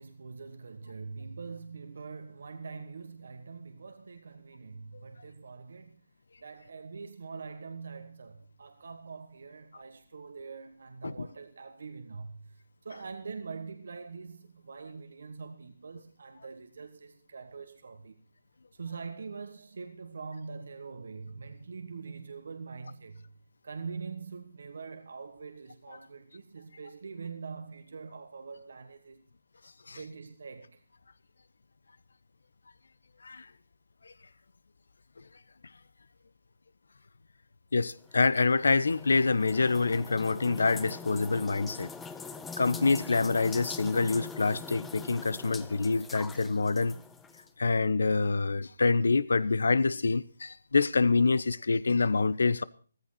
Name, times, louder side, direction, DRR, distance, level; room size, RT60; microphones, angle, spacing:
voice 1, 0.0-6.0 6.4-12.6 12.8-18.2 18.7-23.3 23.6-29.2 29.9-30.8 42.2-42.3, right 5 dB, 65° right, 1.4 m, -43 dB
voice 2, 37.7-41.9 42.6-47.0 47.6-52.6, left 4 dB, 75° left, 0.9 m, -26 dB
sound 1, 37.9-47.5, left 4 dB, 5° left, 0.8 m, -44 dB
15.0 x 15.0 x 4.2 m
figure-of-eight pair, 150°, 0 cm